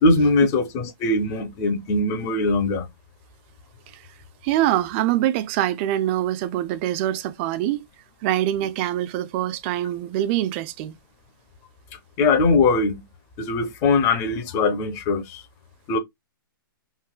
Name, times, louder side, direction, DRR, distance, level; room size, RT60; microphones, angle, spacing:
voice 1, 0.0-2.9 12.2-13.1 13.4-15.4 15.9-16.0, left 3 dB, 25° left, 0.7 m, -21 dB
voice 2, 4.4-7.9 8.2-11.0, right 13 dB, 30° right, 0.4 m, -24 dB
3.8 x 2.3 x 2.2 m
hypercardioid pair, 140°, 12 cm